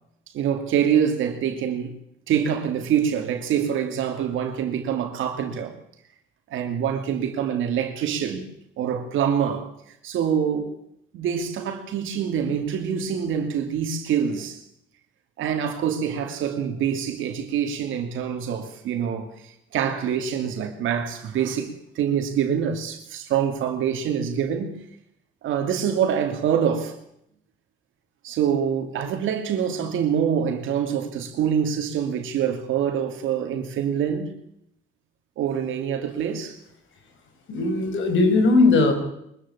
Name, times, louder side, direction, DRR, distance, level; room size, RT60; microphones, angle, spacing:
voice 1, 0.3-1.9 2.3-5.8 6.5-8.5 8.8-9.7 10.0-10.8 11.1-14.6 15.4-24.7 25.4-27.0 28.2-34.3 35.4-36.6, right 8 dB, 85° right, 2.7 m, -25 dB
voice 2, 37.5-38.9, left 3 dB, 75° left, 5.1 m, -18 dB
23.0 x 14.0 x 8.6 m
cardioid pair, 90°, 20 cm